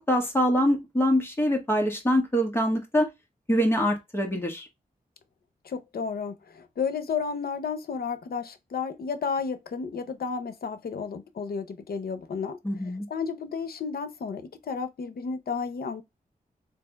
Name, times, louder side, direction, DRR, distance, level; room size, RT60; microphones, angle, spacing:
voice 1, 0.1-3.1 3.5-4.7 12.6-13.0, equal, 15° left, 1.2 m, -24 dB
voice 2, 5.6-16.0, left 5 dB, 80° left, 0.6 m, -32 dB
3.3 x 2.8 x 3.3 m
wide cardioid pair, 120°, 16 cm